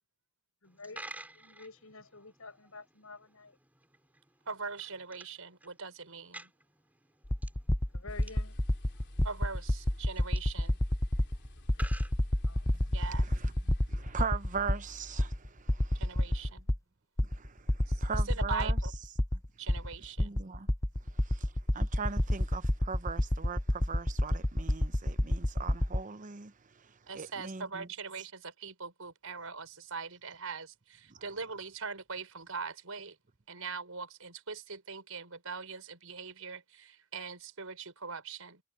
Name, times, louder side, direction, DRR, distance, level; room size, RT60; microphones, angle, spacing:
voice 1, 0.6-3.6 7.9-8.6 10.2-10.4 11.6-12.0 12.4-12.9 18.0-18.3, left 3 dB, 75° left, 6.9 m, -51 dB
Coin (dropping), 0.6-12.9, right 1 dB, 10° right, 3.3 m, -53 dB
voice 2, 4.5-6.5 9.2-10.8 12.9-13.3 15.9-16.7 17.9-18.9 19.6-20.3 27.1-33.2 33.5-38.6, right 5 dB, 80° right, 5.1 m, -41 dB
sound 1, 7.3-14.8 15.2-16.8 17.2-26.0, left 1 dB, 15° left, 0.8 m, -28 dB
sound 2, 8.1-15.3, left 1 dB, 55° left, 3.5 m, -49 dB
voice 3, 13.0-13.5 13.9-16.5 17.2-18.8 20.2-20.7 21.2-26.5 27.1-27.9 31.1-31.2, right 5 dB, 40° right, 0.8 m, -40 dB
head